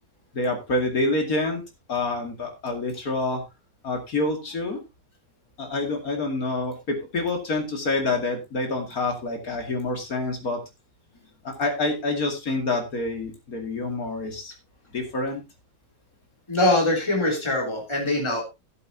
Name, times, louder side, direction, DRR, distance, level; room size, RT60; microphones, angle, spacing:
voice 1, 0.3-1.6 1.9-3.4 3.8-4.8 5.6-10.6 11.4-14.5 14.9-15.4, left 2 dB, 55° left, 3 dB, 2.8 m, -27 dB
voice 2, 16.5-18.4, left 2 dB, 15° left, -1 dB, 3.4 m, -23 dB
15.5 x 8.2 x 2.8 m, 0.25 s
omnidirectional pair, 1.9 m